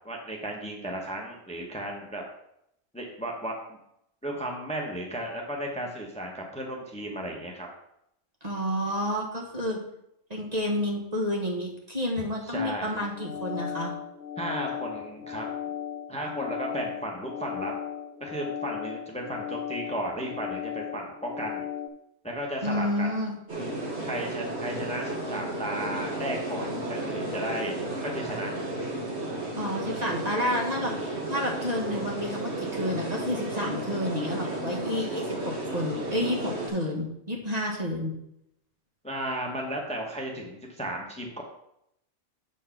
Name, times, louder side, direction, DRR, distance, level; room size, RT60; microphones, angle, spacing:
voice 1, 0.0-2.2 2.9-3.8 4.2-7.7 12.4-13.0 14.4-15.5 16.1-17.7 18.2-21.6 22.2-23.2 24.0-27.7 28.0-28.5 35.0-35.1 39.0-41.4, right 1 dB, 5° left, 0 dB, 1.0 m, -34 dB
voice 2, 8.4-9.8 10.3-13.9 22.6-23.4 29.6-30.9 31.3-38.1, left 1 dB, 30° right, -1 dB, 1.5 m, -30 dB
sound 1, 13.0-21.9, left 9 dB, 65° left, 1.1 m, -36 dB
sound 2, 23.5-36.7, right 1 dB, 55° right, 2.0 m, -33 dB
7.5 x 4.6 x 5.8 m, 0.78 s
omnidirectional pair, 1.4 m